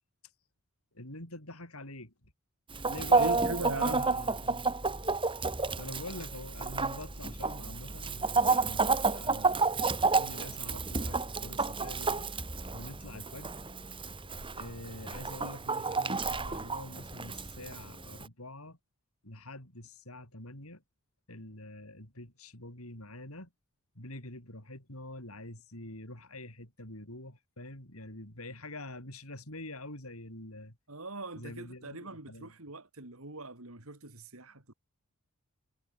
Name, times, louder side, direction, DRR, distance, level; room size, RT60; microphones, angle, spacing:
voice 1, 0.9-2.1 2.9-4.7 5.8-9.6 10.1-12.3 12.7-13.5 14.6-18.8 19.2-20.8 21.3-23.5 24.0-30.7 31.3-32.5, left 1 dB, 70° left, 7.8 m, -45 dB
Chicken rooster, 2.7-18.3, right 4 dB, 25° right, 2.7 m, -31 dB
voice 2, 3.2-4.1 30.9-34.7, right 2 dB, 70° right, 3.6 m, -40 dB
head